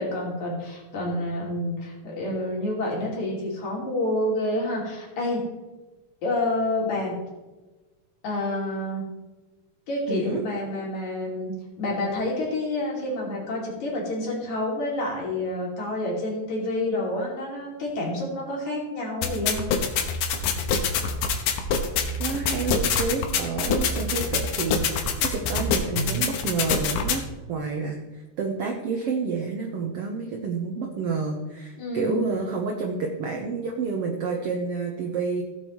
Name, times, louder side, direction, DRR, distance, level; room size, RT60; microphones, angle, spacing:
voice 1, 0.0-5.4 6.2-7.2 8.2-9.1 9.9-11.5 11.8-19.6 31.8-32.2, left 1 dB, 60° left, -3 dB, 4.0 m, -28 dB
voice 2, 10.1-10.4 22.2-35.4, right 4 dB, 70° right, 2 dB, 1.4 m, -29 dB
sound 1, 19.2-27.2, left 5 dB, 90° left, 2.7 m, -25 dB
16.5 x 7.5 x 3.1 m, 1.2 s
omnidirectional pair, 3.9 m